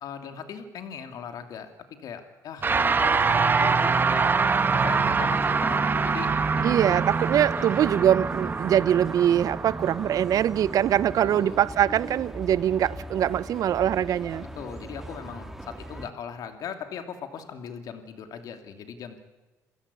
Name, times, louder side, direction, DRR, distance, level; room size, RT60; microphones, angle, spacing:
voice 1, 0.0-1.7 2.0-4.3 4.8-7.0 7.6-7.8 11.2-11.6 14.5-19.2, left 7 dB, 65° left, 2.8 m, -39 dB
sound 1, 2.6-12.1, right 5 dB, 30° right, 1.4 m, -25 dB
sound 2, 4.5-16.1, right 1 dB, 5° right, 2.1 m, -41 dB
voice 2, 6.6-14.5, right 10 dB, 60° right, 0.7 m, -23 dB
28.0 x 16.0 x 8.5 m
cardioid pair, 95°, 7 cm